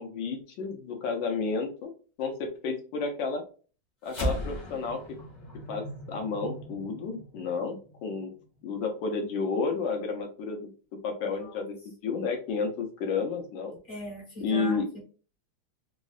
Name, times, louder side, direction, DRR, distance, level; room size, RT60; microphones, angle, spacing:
voice 1, 0.0-1.9 2.2-3.4 4.0-5.0 5.7-8.3 8.6-10.7 11.0-11.8 12.0-13.8 14.4-14.9, left 4 dB, 85° left, 4 dB, 1.4 m, -31 dB
sound 1, 4.1-8.7, equal, 65° left, 0.4 m, -37 dB
voice 2, 11.2-11.6 13.9-15.0, equal, 45° left, -3 dB, 1.2 m, -39 dB
3.4 x 2.0 x 2.3 m, 0.38 s
omnidirectional pair, 2.0 m